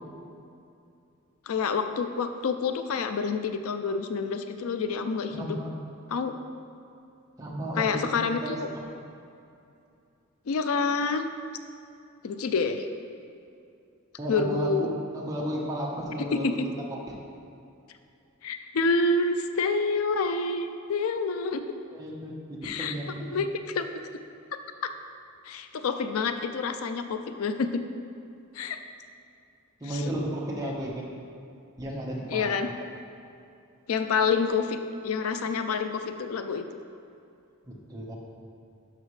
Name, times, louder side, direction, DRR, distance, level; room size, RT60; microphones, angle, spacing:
voice 1, 1.5-5.6 6.1-6.3 7.8-8.7 10.5-11.3 12.2-12.9 14.3-14.9 16.4-16.7 18.4-21.6 22.6-22.9 23.3-23.9 24.8-24.9 25.4-27.8 28.5-28.8 29.9-30.0 32.3-32.7 33.9-34.8 35.0-36.6, left 4 dB, 75° left, 8 dB, 0.4 m, -28 dB
voice 2, 5.3-5.7 7.4-8.8 14.2-17.2 21.9-23.4 29.8-31.1 31.8-32.5 37.7-38.2, right 1 dB, 15° right, -3 dB, 1.1 m, -33 dB
11.5 x 5.8 x 3.2 m, 2.6 s
head